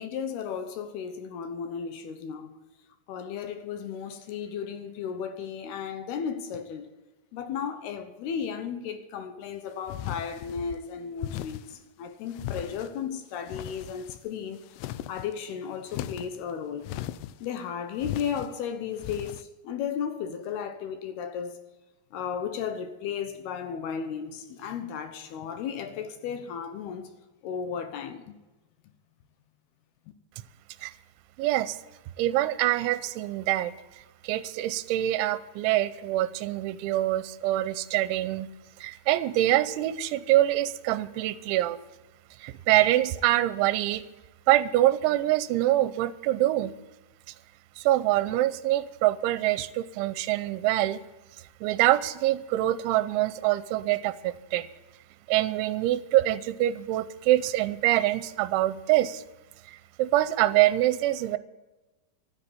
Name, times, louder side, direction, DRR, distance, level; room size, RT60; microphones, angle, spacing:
voice 1, 0.0-2.6 3.1-6.9 7.3-14.6 15.1-16.9 17.4-21.6 22.1-27.1 27.4-28.4, left 7 dB, 70° left, 2.6 m, -34 dB
sound 1, 9.9-10.8 11.2-11.8 12.3-13.0 13.4-14.3 14.6-15.3 15.9-16.4 16.8-17.5 18.0-18.5 19.0-19.4, left 12 dB, 90° left, 2.3 m, -37 dB
voice 2, 31.4-31.8 32.2-33.7 34.2-38.5 38.8-41.8 42.4-44.0 44.5-46.7 47.8-51.0 51.6-54.7 55.3-59.2 59.7-61.4, right 15 dB, 85° right, 3.0 m, -25 dB
13.0 x 9.8 x 8.4 m
omnidirectional pair, 5.4 m